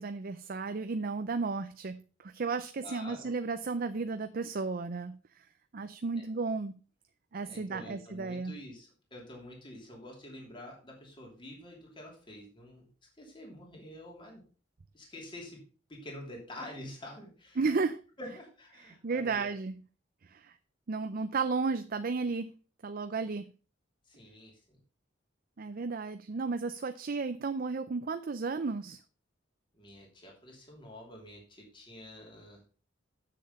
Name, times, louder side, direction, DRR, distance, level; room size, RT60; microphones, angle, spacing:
voice 1, 0.0-5.5 5.7-6.7 7.3-8.6 17.6-18.0 19.0-19.7 20.2-20.6 20.9-22.5 22.8-23.5 25.6-29.0, right 4 dB, 50° right, 9 dB, 0.5 m, -33 dB
voice 2, 2.8-3.3 6.2-6.3 7.4-12.9 13.2-14.4 14.9-15.6 15.9-17.7 18.2-19.6 23.1-23.2 24.1-24.8 29.7-32.6, left 1 dB, 25° left, -1 dB, 2.9 m, -48 dB
7.7 x 6.7 x 5.3 m, 0.37 s
head